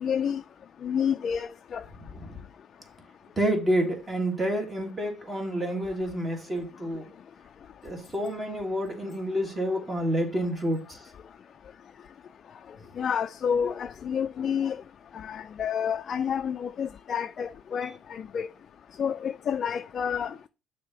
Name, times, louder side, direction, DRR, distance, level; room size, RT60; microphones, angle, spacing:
voice 1, 0.0-0.4 0.8-1.8 13.0-14.8 15.3-18.5 19.0-20.3, left 7 dB, 45° left, 0.3 m, -29 dB
voice 2, 3.4-7.1 7.8-11.0, equal, 20° right, 1.7 m, -29 dB
6.7 x 2.8 x 5.4 m
cardioid pair, 100°, 0 cm